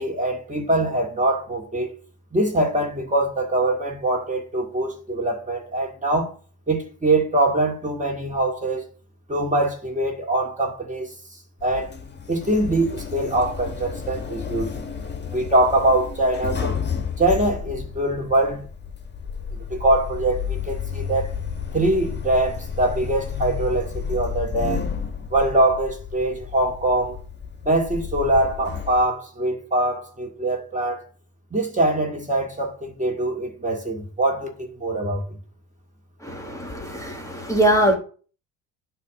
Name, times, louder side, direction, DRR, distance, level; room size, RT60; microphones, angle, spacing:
voice 1, 0.0-1.9 2.3-6.3 6.7-8.8 9.3-11.1 11.6-11.9 12.3-14.7 15.3-16.8 17.2-18.6 19.7-21.3 21.7-24.8 25.3-27.2 27.6-31.0 31.5-35.2, right 1 dB, 15° right, 2.2 m, -23 dB
Sliding door, 11.6-29.0, left 6 dB, 25° left, 1.6 m, -32 dB
voice 2, 36.2-38.0, right 1 dB, 5° left, 2.2 m, -22 dB
8.4 x 3.4 x 6.6 m
hypercardioid pair, 70°, 45 cm